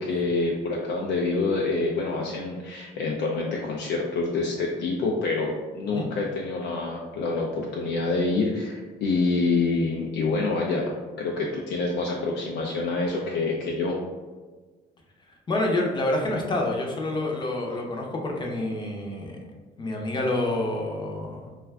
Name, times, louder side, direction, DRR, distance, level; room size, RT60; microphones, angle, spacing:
voice 1, 0.0-14.0, left 3 dB, 85° left, -2 dB, 0.4 m, -27 dB
voice 2, 15.5-19.4 19.8-21.5, left 2 dB, 25° left, 0 dB, 0.5 m, -28 dB
2.4 x 2.3 x 3.3 m, 1.3 s
cardioid pair, 110°, 17 cm